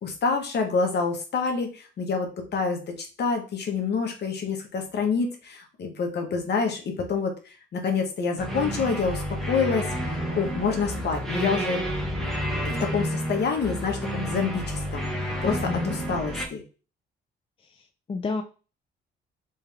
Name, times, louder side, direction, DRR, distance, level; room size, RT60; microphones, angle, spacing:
voice 1, 0.0-11.8 12.8-15.1 15.4-16.6, left 5 dB, 60° left, 3 dB, 1.2 m, -27 dB
sound 1, 8.4-16.5, equal, ahead, 1.3 m, -30 dB
voice 2, 15.4-16.0 18.1-18.4, left 4 dB, 25° left, 5 dB, 0.5 m, -30 dB
3.4 x 3.2 x 3.4 m, 0.34 s
cardioid pair, 90°, 20 cm